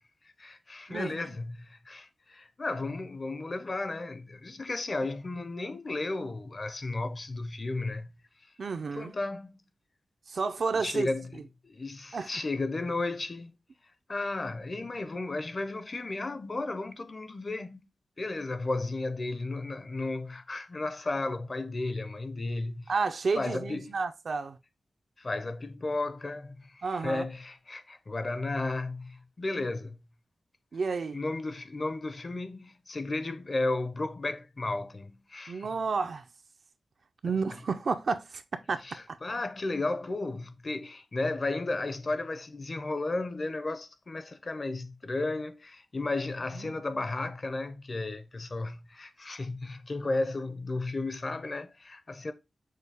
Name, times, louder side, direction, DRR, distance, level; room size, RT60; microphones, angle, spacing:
voice 1, 0.4-8.2 8.9-9.6 10.7-11.3 11.6-13.5 14.1-17.9 18.2-22.9 23.3-23.9 25.2-30.0 31.1-35.7 38.8-52.3, left 2 dB, 35° left, 0.5 m, -34 dB
voice 2, 8.6-9.1 10.3-11.1 12.1-12.3 22.9-24.6 26.8-27.2 30.7-31.2 35.5-36.2 37.2-38.4 38.7-39.2 46.5-46.7, right 4 dB, 65° right, 0.5 m, -31 dB
6.4 x 2.2 x 3.4 m
wide cardioid pair, 120°, 0 cm